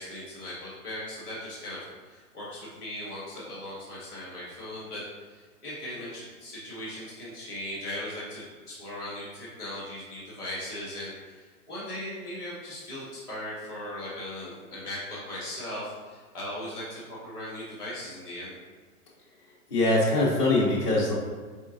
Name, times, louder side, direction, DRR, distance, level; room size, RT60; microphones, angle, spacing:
voice 1, 0.0-1.8 2.0-18.5, left 1 dB, 5° right, -21 dB, 0.8 m, -38 dB
voice 2, 19.7-21.1, left 2 dB, 20° left, -9 dB, 0.6 m, -23 dB
5.1 x 3.7 x 2.6 m, 1.5 s
hypercardioid pair, 175°, 46 cm